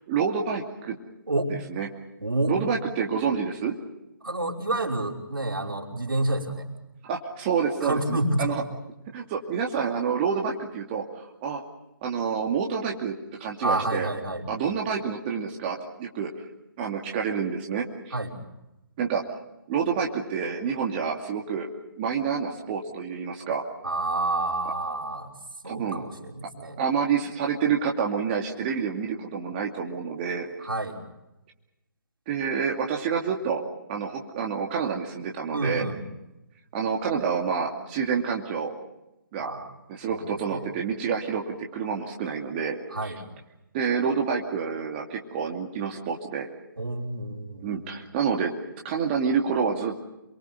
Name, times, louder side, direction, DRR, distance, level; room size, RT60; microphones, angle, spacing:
voice 1, 0.1-1.0 1.7-1.9 2.5-3.7 7.1-8.5 9.1-11.6 12.0-14.1 14.5-16.3 16.8-18.1 19.0-19.2 19.7-21.7 22.0-23.6 25.7-26.0 26.8-30.5 32.3-33.6 33.9-35.8 36.7-38.7 39.3-39.5 39.9-43.1 43.7-46.5 47.6-48.5 48.8-50.0, right 6 dB, 30° right, 0 dB, 2.5 m, -28 dB
voice 2, 2.2-2.6 4.2-6.7 7.8-8.6 13.6-14.5 18.1-18.3 23.8-25.3 25.6-26.8 30.6-31.0 35.5-36.0 39.4-39.7 40.1-40.6 42.9-43.2 46.8-47.8, right 2 dB, 80° right, 0 dB, 5.5 m, -29 dB
28.5 x 23.5 x 5.5 m, 0.94 s
figure-of-eight pair, 140°, 12 cm